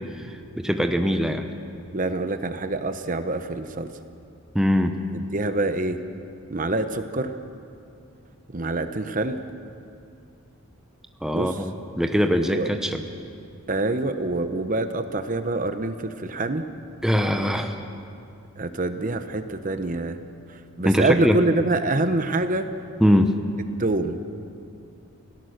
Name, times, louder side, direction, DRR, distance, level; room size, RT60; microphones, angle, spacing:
voice 1, 0.6-1.5 4.5-5.0 11.2-13.0 17.0-17.7 20.8-21.4 23.0-23.4, equal, ahead, 5 dB, 0.9 m, -21 dB
voice 2, 1.9-3.9 5.1-6.0 6.5-7.4 8.5-9.4 11.3-11.6 12.3-12.7 13.7-16.7 18.6-20.2 20.5-22.7 23.8-24.2, right 2 dB, 35° right, 9 dB, 0.9 m, -26 dB
28.5 x 17.5 x 6.6 m, 2.5 s
head